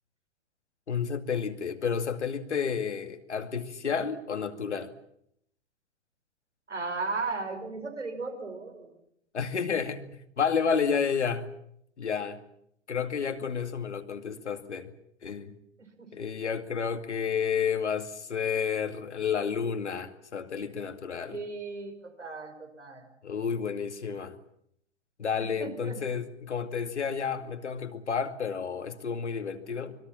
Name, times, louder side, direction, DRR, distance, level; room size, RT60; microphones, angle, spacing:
voice 1, 0.9-4.9 9.3-10.0 10.4-11.5 12.0-12.4 12.9-14.9 15.2-15.6 16.1-21.4 23.2-24.4 25.2-30.0, left 6 dB, 75° left, 8 dB, 2.4 m, -31 dB
voice 2, 6.7-8.9 16.0-16.1 21.3-23.0 25.4-26.0, right 3 dB, 80° right, 6 dB, 5.5 m, -36 dB
25.5 x 22.0 x 7.5 m, 0.73 s
figure-of-eight pair, 110°, 35 cm